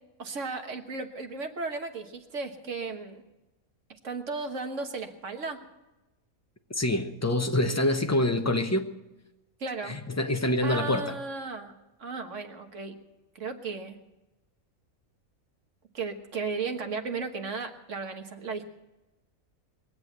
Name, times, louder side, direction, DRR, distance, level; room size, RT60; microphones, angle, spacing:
voice 1, 0.2-3.2 4.0-5.6 9.6-10.0 10.6-11.7 12.0-13.0 13.3-14.0 15.9-18.7, right 4 dB, 60° right, 1.7 m, -35 dB
voice 2, 6.8-8.9 9.8-11.1, left 1 dB, 15° left, 0.7 m, -26 dB
21.5 x 8.0 x 8.0 m
omnidirectional pair, 1.5 m